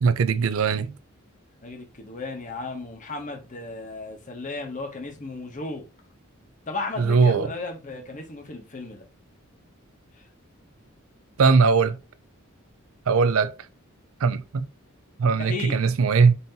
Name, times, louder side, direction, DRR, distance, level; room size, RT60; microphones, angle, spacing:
voice 1, 0.0-0.9 7.0-7.5 11.4-12.0 13.1-13.5 14.2-14.7 15.2-16.3, right 5 dB, 75° right, 0.5 m, -20 dB
voice 2, 1.6-5.9 6.7-9.1 10.2-10.3 15.4-15.9, left 3 dB, 35° left, 0.9 m, -35 dB
5.5 x 2.7 x 2.8 m
head